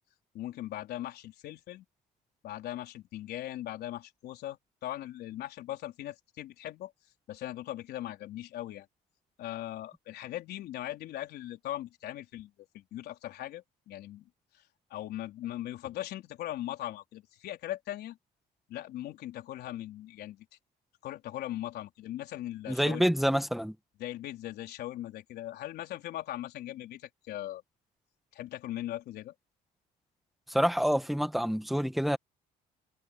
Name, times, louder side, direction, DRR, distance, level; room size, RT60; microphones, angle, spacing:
voice 1, 0.3-1.8 2.4-6.9 7.3-8.9 9.4-14.6 14.9-18.2 18.7-20.5 21.0-23.0 24.0-27.6 28.3-29.3, left 13 dB, 75° left, 4.2 m, -39 dB
voice 2, 22.7-23.7 30.5-32.2, equal, ahead, 1.7 m, -27 dB
cardioid pair, 110°, 17 cm